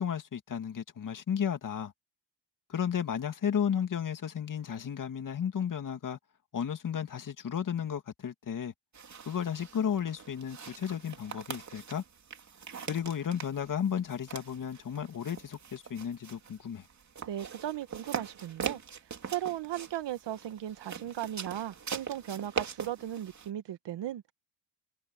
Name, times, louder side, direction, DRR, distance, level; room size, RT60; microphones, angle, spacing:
voice 1, 0.0-1.9 2.7-6.2 6.5-8.7 9.3-12.0 12.8-16.9, left 8 dB, 40° left, 2.3 m, -33 dB
sound 1, 8.9-23.5, right 6 dB, 35° right, 3.1 m, -42 dB
voice 2, 17.2-18.8 19.3-24.3, right 12 dB, 60° right, 1.6 m, -37 dB
cardioid pair, 105°, 48 cm